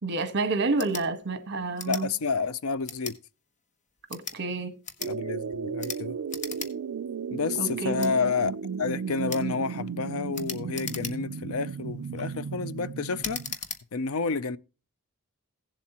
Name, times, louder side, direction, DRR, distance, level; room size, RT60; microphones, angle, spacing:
voice 1, 0.0-2.1 4.1-4.8 7.6-8.1, right 3 dB, 55° right, 1.3 m, -29 dB
sound 1, 0.7-1.1 1.8-2.0 2.8-3.2 4.0-4.4 4.8-5.1 5.8-6.0 6.3-6.7 7.1-7.2 8.0-8.1 9.3-9.5 10.3-11.4 12.0-12.3 13.2-13.8, left 6 dB, 35° left, 1.2 m, -37 dB
voice 2, 1.9-3.2 5.0-6.2 7.3-8.5 8.8-13.4 13.9-14.6, left 4 dB, 70° left, 0.5 m, -30 dB
sound 2, 5.0-13.6, right 6 dB, 80° right, 0.4 m, -35 dB
17.0 x 7.4 x 2.9 m
head